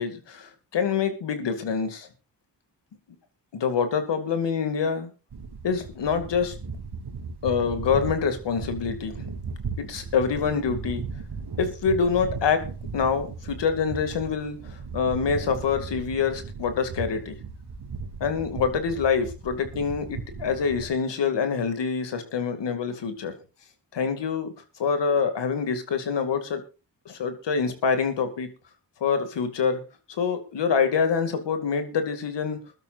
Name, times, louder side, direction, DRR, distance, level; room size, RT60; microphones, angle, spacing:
voice 1, 0.0-2.1 3.5-5.1 5.6-6.6 7.4-9.3 9.8-11.0 11.6-12.6 12.9-17.4 18.2-23.3 23.9-24.5 24.8-26.6 27.1-28.5 29.0-29.8 30.2-32.6, left 6 dB, 85° left, 8 dB, 2.4 m, -26 dB
sound 1, 5.3-20.9, right 4 dB, 65° right, 3.3 m, -37 dB
22.5 x 12.5 x 2.5 m, 0.31 s
cardioid pair, 50°, 41 cm